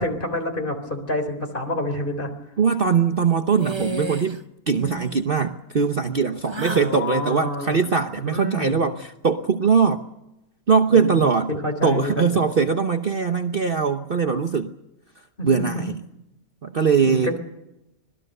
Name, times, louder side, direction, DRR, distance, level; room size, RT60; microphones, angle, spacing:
voice 1, 0.0-2.3 6.7-7.8 8.2-8.8 10.9-12.2 15.4-15.5 17.0-17.4, left 1 dB, 35° left, 6 dB, 4.0 m, -28 dB
voice 2, 2.6-4.4 4.7-10.0 10.7-11.5 11.8-14.7 15.4-15.9 16.6-17.4, right 5 dB, 40° right, 7 dB, 1.1 m, -21 dB
sound 1, 3.6-4.4 4.7-5.3 6.5-7.0, right 2 dB, 25° right, 0.7 m, -32 dB
25.5 x 20.0 x 6.7 m, 0.91 s
omnidirectional pair, 1.6 m